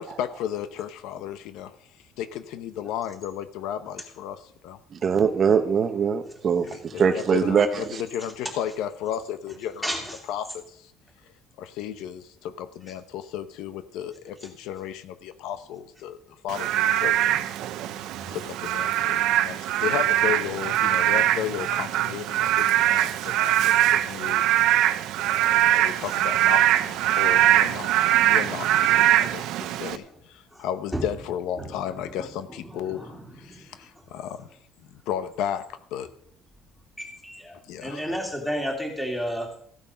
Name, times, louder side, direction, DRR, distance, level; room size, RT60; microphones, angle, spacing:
voice 1, 0.0-1.8 2.2-4.8 6.6-9.9 10.3-10.9 11.6-16.2 16.4-17.6 18.0-24.4 24.8-24.9 25.3-34.5 34.8-36.1 37.7-38.0, left 10 dB, 75° left, 11 dB, 0.9 m, -34 dB
voice 2, 4.9-8.0, right 6 dB, 35° right, 8 dB, 0.9 m, -22 dB
voice 3, 9.8-10.1 18.1-18.3 30.5-30.6 30.9-31.0 32.7-33.2 33.5-33.6 37.0-39.5, equal, 5° left, 1 dB, 2.7 m, -32 dB
Frog / Rain, 16.5-30.0, right 13 dB, 70° right, 0.8 m, -22 dB
15.0 x 8.9 x 5.7 m, 0.68 s
cardioid pair, 160°, 0 cm